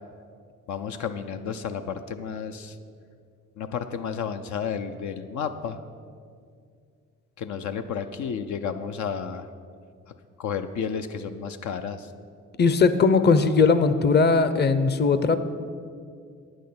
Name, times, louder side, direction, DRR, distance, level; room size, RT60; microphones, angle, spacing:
voice 1, 0.7-2.8 3.6-5.8 7.4-9.5 10.4-12.1, left 7 dB, 70° left, 7 dB, 0.6 m, -32 dB
voice 2, 12.6-15.4, left 4 dB, 35° left, 12 dB, 0.7 m, -19 dB
9.3 x 6.4 x 8.6 m, 2.2 s
cardioid pair, 90°, 30 cm